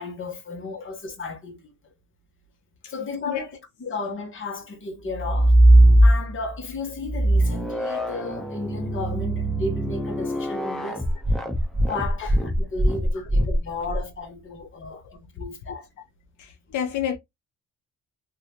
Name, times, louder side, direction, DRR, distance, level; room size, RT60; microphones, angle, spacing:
voice 1, 0.0-1.7 2.9-3.5 3.8-5.6 6.0-11.1 11.7-15.0 15.3-15.9, left 3 dB, 40° left, 1.4 m, -34 dB
sound 1, 5.1-6.5 7.0-14.0, right 1 dB, ahead, 0.9 m, -20 dB
voice 2, 14.8-15.2 16.4-17.2, left 9 dB, 80° left, 0.7 m, -31 dB
3.1 x 2.8 x 2.9 m
cardioid pair, 90°, 30 cm